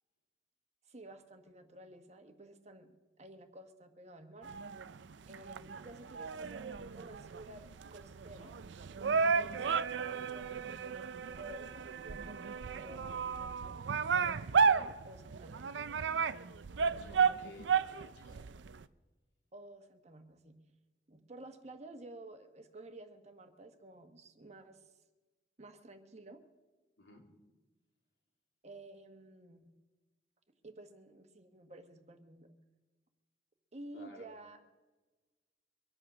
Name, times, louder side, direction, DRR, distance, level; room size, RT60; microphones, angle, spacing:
voice 1, 0.9-4.5 5.3-8.6 9.3-10.8 11.2-13.3 14.1-15.9 19.5-20.6 21.1-24.8 25.6-26.4 28.6-29.7 30.6-32.5 33.7-34.6, right 1 dB, 40° right, 6 dB, 1.3 m, -52 dB
sound 1, 4.4-18.8, right 6 dB, 85° right, 0.5 m, -33 dB
voice 2, 16.9-18.5 27.0-27.3 33.9-34.3, left 1 dB, 90° left, 1 dB, 3.0 m, -55 dB
24.0 x 8.7 x 6.1 m, 1.2 s
head